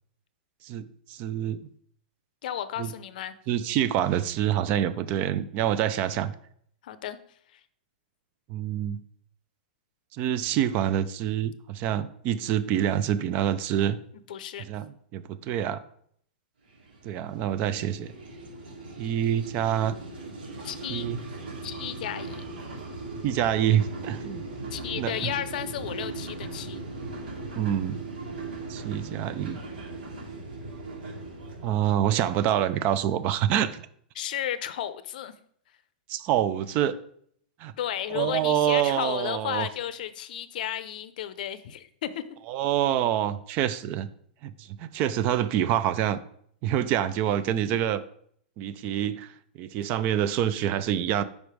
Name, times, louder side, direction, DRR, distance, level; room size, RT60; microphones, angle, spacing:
voice 1, 0.6-1.6 2.8-2.9 3.5-6.3 8.5-9.0 10.1-14.0 14.7-15.8 17.0-18.1 19.0-20.0 20.9-21.2 23.2-24.4 25.0-25.3 27.6-28.0 28.7-29.6 31.6-33.8 36.1-37.0 37.6-37.7 38.1-39.7 42.5-44.1 44.4-46.2 46.6-48.0 48.6-49.3 49.6-51.2, right 10 dB, 30° right, 14 dB, 0.4 m, -26 dB
voice 2, 2.4-3.4 6.8-7.2 7.5-7.6 14.3-14.6 20.6-21.1 21.6-22.5 24.7-26.8 34.1-35.3 37.8-42.2, left 11 dB, 60° left, 13 dB, 0.6 m, -33 dB
sound 1, 16.7-33.3, right 2 dB, 85° right, 2.2 m, -39 dB
5.2 x 4.8 x 4.9 m, 0.64 s
hypercardioid pair, 155°, 5 cm